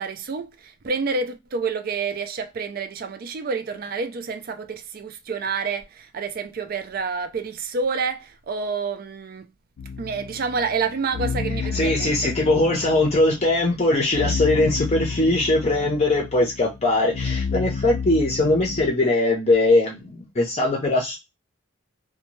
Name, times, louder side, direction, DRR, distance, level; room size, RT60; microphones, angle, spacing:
voice 1, 0.0-9.5 10.0-12.3, right 4 dB, 45° right, 0.4 m, -28 dB
sound 1, 9.8-18.9, left 5 dB, 80° left, 0.4 m, -31 dB
voice 2, 11.7-21.2, left 2 dB, 30° left, 0.6 m, -21 dB
2.6 x 2.1 x 3.0 m
head